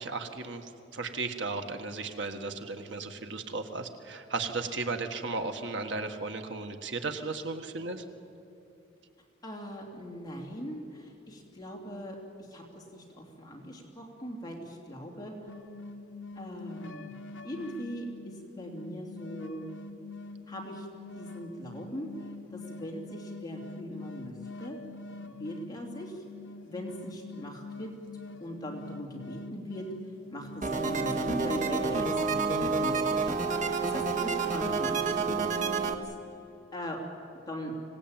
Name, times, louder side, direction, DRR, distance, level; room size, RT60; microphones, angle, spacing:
voice 1, 0.0-8.0, right 3 dB, 75° right, 6 dB, 1.6 m, -35 dB
voice 2, 9.4-15.3 16.3-17.1 17.4-19.7 20.5-20.9 21.2-22.1 22.5-24.8 25.3-26.2 26.6-27.9 28.4-29.8 30.3-36.1 36.7-37.0 37.5-37.7, equal, 20° left, -1 dB, 3.0 m, -40 dB
sound 1, 15.5-33.0, left 3 dB, 80° left, 0.9 m, -45 dB
sound 2, 30.6-35.9, right 4 dB, 40° right, 1.6 m, -29 dB
25.5 x 18.0 x 8.9 m, 2.7 s
head